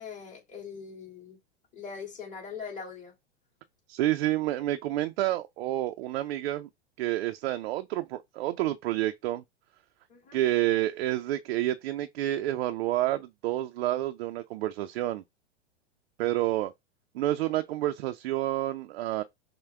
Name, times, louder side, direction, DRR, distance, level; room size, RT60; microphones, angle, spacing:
voice 1, 0.0-1.4 1.7-3.1 10.1-10.4, left 6 dB, 20° left, 2.4 m, -41 dB
voice 2, 3.9-6.7 7.0-9.4 10.3-15.2 16.2-16.7 17.1-19.2, right 15 dB, 65° right, 0.5 m, -29 dB
5.7 x 2.2 x 3.4 m
hypercardioid pair, 110°, 33 cm